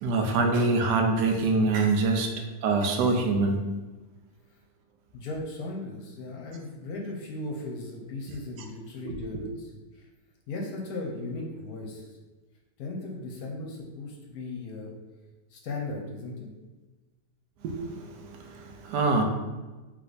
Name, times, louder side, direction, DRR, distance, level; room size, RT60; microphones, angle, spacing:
voice 1, 0.0-3.6 9.0-9.2 17.6-19.2, right 3 dB, 75° right, 3 dB, 1.2 m, -25 dB
voice 2, 5.1-10.1 10.5-12.2 12.8-14.9 15.5-16.3, left 2 dB, 65° left, -1 dB, 1.1 m, -37 dB
3.3 x 3.3 x 3.9 m, 1.2 s
omnidirectional pair, 1.8 m